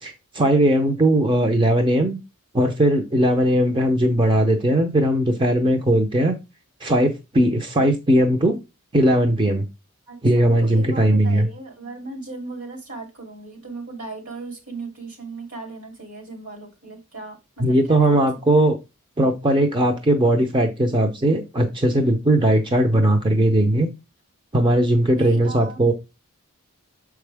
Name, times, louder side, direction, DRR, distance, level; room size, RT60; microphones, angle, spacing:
voice 1, 0.0-2.2 2.5-6.4 6.8-8.6 8.9-9.7 10.2-11.5 17.6-18.8 19.2-23.9 24.5-25.9, right 1 dB, 20° right, 4 dB, 0.7 m, -19 dB
voice 2, 10.1-18.3 18.6-18.7 25.1-25.9, right 3 dB, 65° right, 2 dB, 3.0 m, -37 dB
6.9 x 4.7 x 3.4 m, 0.25 s
head